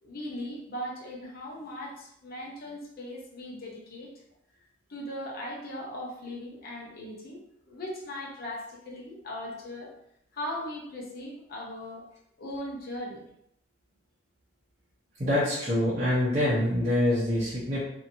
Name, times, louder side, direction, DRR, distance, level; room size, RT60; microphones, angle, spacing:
voice 1, 0.0-4.1 4.9-9.9 10.3-12.1 12.4-13.3, left 1 dB, 50° left, -2 dB, 0.6 m, -38 dB
voice 2, 15.2-17.8, left 1 dB, 40° right, -10 dB, 0.8 m, -25 dB
2.8 x 2.6 x 2.6 m, 0.75 s
head